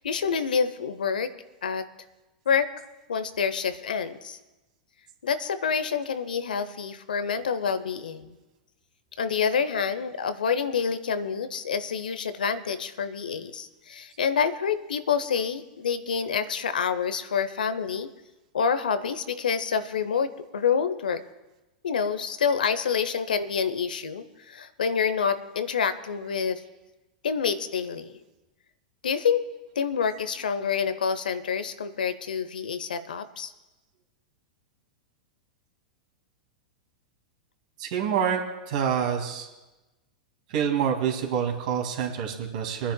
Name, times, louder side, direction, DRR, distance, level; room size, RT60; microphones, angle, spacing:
voice 1, 0.0-1.3 1.6-1.9 2.5-2.7 3.1-4.4 5.2-8.3 9.2-18.1 18.5-21.2 21.8-26.6 27.2-28.1 29.0-29.4 29.8-33.5, left 6 dB, 85° left, 12 dB, 0.7 m, -27 dB
voice 2, 37.8-38.4 38.7-39.5 40.5-42.9, right 8 dB, 60° right, 1 dB, 2.3 m, -26 dB
27.5 x 10.0 x 2.3 m, 1.1 s
hypercardioid pair, 110°, 5 cm